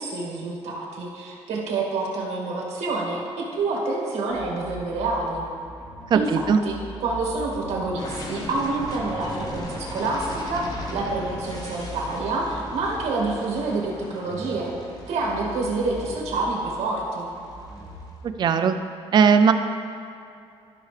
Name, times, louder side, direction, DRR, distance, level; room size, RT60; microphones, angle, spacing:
voice 1, 0.0-5.4 6.1-14.7 15.1-17.3, right 3 dB, 75° right, -3 dB, 2.0 m, -27 dB
sound 1, 4.3-18.0, equal, 5° right, 1.7 m, -41 dB
voice 2, 6.1-6.6 18.4-18.8 19.1-19.5, right 6 dB, 40° right, 8 dB, 0.4 m, -18 dB
sound 2, 8.0-17.8, left 2 dB, 35° left, 1.1 m, -38 dB
13.5 x 5.8 x 3.3 m, 2.5 s
cardioid pair, 165°, 11 cm